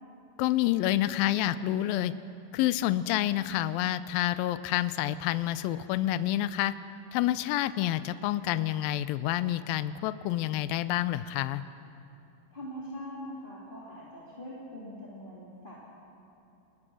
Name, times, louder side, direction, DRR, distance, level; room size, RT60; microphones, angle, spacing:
voice 1, 0.4-2.1 2.5-6.7 7.1-11.6, left 14 dB, 85° left, 14 dB, 2.4 m, -28 dB
voice 2, 12.5-15.8, equal, 15° left, -6 dB, 2.8 m, -42 dB
28.0 x 20.0 x 6.3 m, 2.8 s
omnidirectional pair, 4.0 m